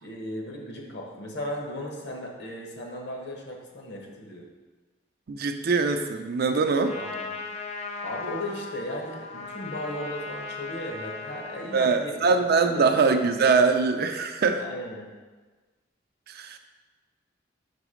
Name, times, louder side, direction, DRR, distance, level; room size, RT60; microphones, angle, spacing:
voice 1, 0.0-4.5 6.9-7.3 8.0-12.4 12.7-13.1 14.6-15.1, left 1 dB, 60° left, 1 dB, 1.0 m, -36 dB
voice 2, 5.3-7.0 11.7-14.6 16.3-16.6, right 4 dB, 55° right, 6 dB, 0.4 m, -23 dB
Trumpet, 6.8-11.8, left 4 dB, 35° left, 0.5 m, -37 dB
4.9 x 4.1 x 5.0 m, 1.3 s
head